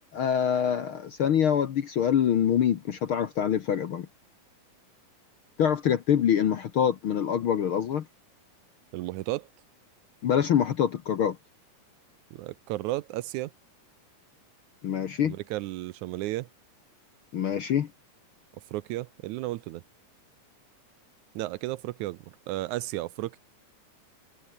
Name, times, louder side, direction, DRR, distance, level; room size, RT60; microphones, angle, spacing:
voice 1, 0.1-4.1 5.6-8.0 10.2-11.4 14.8-15.4 17.3-17.9, left 9 dB, 60° left, 1.5 m, -25 dB
voice 2, 8.9-9.5 12.3-13.5 15.2-16.5 18.7-19.8 21.4-23.4, right 17 dB, 80° right, 1.9 m, -33 dB
omnidirectional pair, 3.6 m